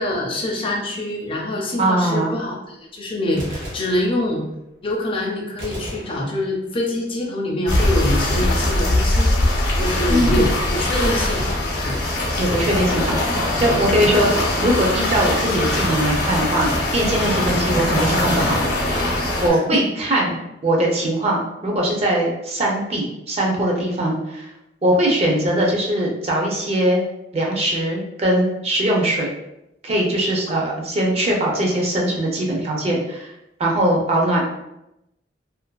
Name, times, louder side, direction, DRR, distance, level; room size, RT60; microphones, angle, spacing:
voice 1, 0.0-4.4 4.8-12.0 13.9-14.1 19.5-19.8 30.5-30.6, left 1 dB, 30° left, -1 dB, 0.5 m, -25 dB
voice 2, 1.8-2.3 10.1-10.5 12.4-13.2 13.6-18.6 19.4-24.5 24.8-27.0 27.3-29.3 29.8-33.3 33.6-34.4, right 1 dB, 35° right, -2 dB, 0.5 m, -21 dB
Gunshot gunfire, 3.2-4.6 5.6-6.8 7.7-9.2 11.0-12.4, equal, 80° right, 0.8 m, -36 dB
sound 1, 7.7-19.5, left 1 dB, 65° left, 0.7 m, -21 dB
2.5 x 2.5 x 2.2 m, 0.87 s
head